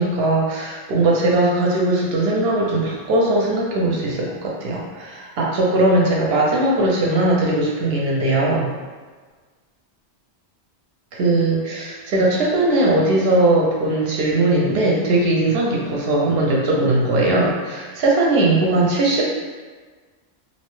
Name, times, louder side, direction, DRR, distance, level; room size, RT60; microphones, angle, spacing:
voice 1, 0.0-8.7 11.1-19.2, right 2 dB, 65° right, -3 dB, 0.7 m, -19 dB
2.7 x 2.0 x 3.0 m, 1.4 s
omnidirectional pair, 1.2 m